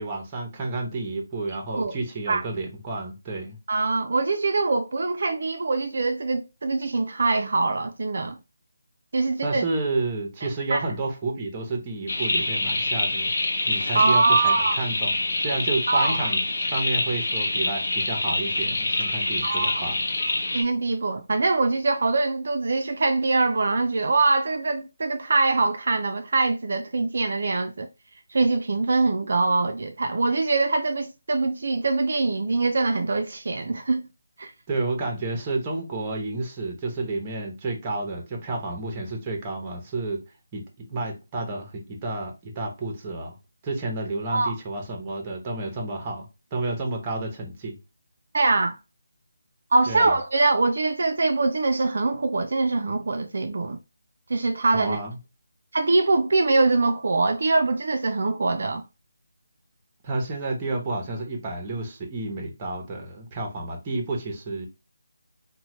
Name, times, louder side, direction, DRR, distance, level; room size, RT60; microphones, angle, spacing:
voice 1, 0.0-3.6 9.4-13.3 13.7-16.4 16.7-20.0 34.7-40.2 40.5-43.3 43.6-47.8 49.9-50.2 54.7-55.2 60.0-64.7, right 2 dB, 15° right, 0.7 m, -30 dB
voice 2, 3.7-8.4 9.1-9.6 10.7-10.9 13.9-14.8 15.9-16.3 19.4-19.8 20.5-27.9 28.3-34.1 34.4-34.5 44.3-44.5 48.3-48.8 49.7-53.8 54.3-55.0 55.7-58.8, right 3 dB, 55° right, 0.4 m, -23 dB
sound 1, 12.1-20.6, left 2 dB, 60° left, 0.7 m, -26 dB
2.9 x 2.1 x 2.9 m
figure-of-eight pair, 170°, 0 cm